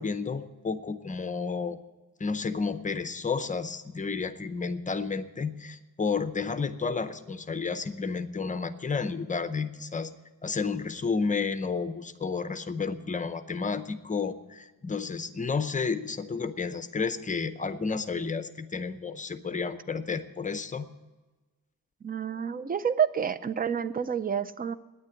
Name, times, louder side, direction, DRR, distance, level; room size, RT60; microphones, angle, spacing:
voice 1, 0.0-1.8 2.2-10.1 10.4-20.9, left 5 dB, 20° left, 11 dB, 0.6 m, -31 dB
voice 2, 22.0-24.7, right 7 dB, 25° right, 14 dB, 0.4 m, -29 dB
9.4 x 9.3 x 9.8 m, 1.2 s
wide cardioid pair, 165°, 37 cm